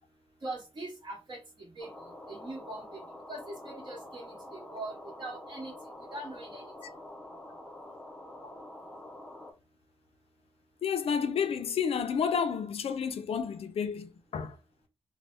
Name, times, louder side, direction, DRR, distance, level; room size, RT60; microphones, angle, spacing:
voice 1, 0.4-1.4 1.7-1.9 2.3-3.0 3.3-4.9 5.2-5.7 6.1-6.7, right 2 dB, 50° right, 1.1 m, -41 dB
sound 1, 1.8-9.5, left 1 dB, 10° left, 0.4 m, -47 dB
voice 2, 10.8-14.6, left 7 dB, 70° left, 0.4 m, -30 dB
2.6 x 2.0 x 3.2 m
wide cardioid pair, 160°, 10 cm